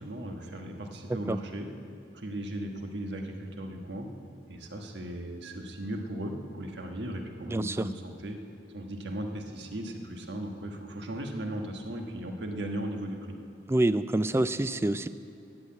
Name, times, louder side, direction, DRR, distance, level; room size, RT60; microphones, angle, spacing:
voice 1, 0.0-1.7 2.1-4.1 4.5-8.4 8.7-13.2, right 1 dB, 80° right, 3 dB, 1.4 m, -37 dB
voice 2, 7.5-7.9 13.7-15.1, right 1 dB, 15° right, 13 dB, 0.3 m, -26 dB
13.0 x 8.2 x 8.6 m, 2.7 s
head